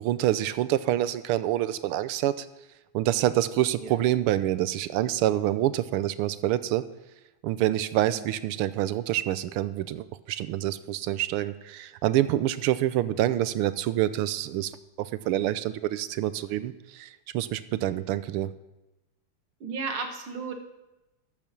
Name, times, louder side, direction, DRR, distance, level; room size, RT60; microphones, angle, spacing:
voice 1, 0.0-2.5 2.9-6.8 7.4-14.7 15.0-17.1 17.3-18.5, right 13 dB, 90° right, 14 dB, 1.5 m, -27 dB
voice 2, 19.6-20.5, right 4 dB, 75° right, 4 dB, 2.3 m, -34 dB
14.0 x 7.1 x 6.0 m, 1.0 s
omnidirectional pair, 2.4 m